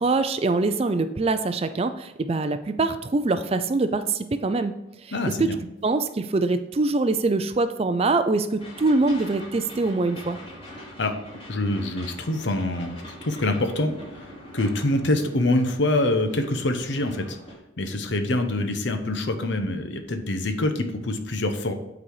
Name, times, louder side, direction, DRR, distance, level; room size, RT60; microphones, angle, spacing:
voice 1, 0.0-4.8 5.4-5.5 5.8-10.4, right 3 dB, 30° right, 10 dB, 0.4 m, -24 dB
voice 2, 5.1-5.6 11.0-11.1 11.5-14.2 14.5-17.4 17.8-21.7, left 2 dB, 65° left, 7 dB, 0.9 m, -25 dB
sound 1, 8.6-17.6, equal, 30° left, 2.7 m, -43 dB
8.5 x 4.1 x 4.8 m, 0.91 s
head